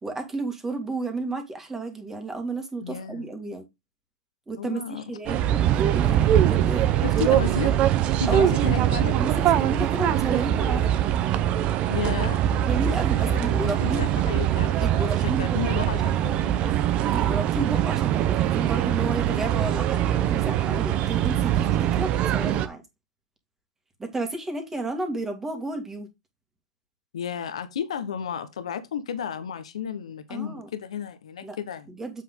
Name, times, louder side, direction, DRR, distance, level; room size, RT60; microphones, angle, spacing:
voice 1, 0.0-3.6 4.5-7.0 8.3-8.5 9.2-11.1 12.7-14.1 14.8-15.6 16.7-16.8 17.1-22.8 24.0-26.1 30.3-30.7 31.4-31.6 31.9-32.2, right 2 dB, 10° right, 2.1 m, -32 dB
voice 2, 2.8-3.3 4.6-5.4 7.0-7.8 8.2-9.2 11.9-12.4 13.2-16.8 27.1-31.9, left 8 dB, 80° left, 1.1 m, -33 dB
sound 1, 5.3-22.7, right 11 dB, 35° right, 0.8 m, -23 dB
7.6 x 5.9 x 3.8 m
hypercardioid pair, 120°, 3 cm